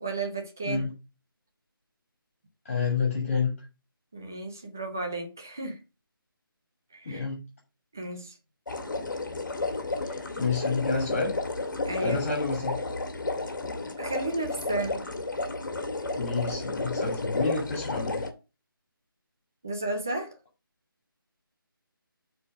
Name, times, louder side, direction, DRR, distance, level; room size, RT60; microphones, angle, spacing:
voice 1, 0.0-0.9 4.1-5.8 6.9-7.2 7.9-8.3 11.9-12.2 14.0-15.0 19.6-20.4, right 2 dB, 10° right, 0.4 m, -33 dB
voice 2, 2.6-3.5 7.0-7.4 10.1-11.4 12.0-12.8 16.1-18.3, left 4 dB, 35° left, 2.6 m, -29 dB
sound 1, 8.7-18.3, left 2 dB, 55° left, 1.8 m, -32 dB
7.0 x 4.5 x 6.2 m
figure-of-eight pair, 170°, 12 cm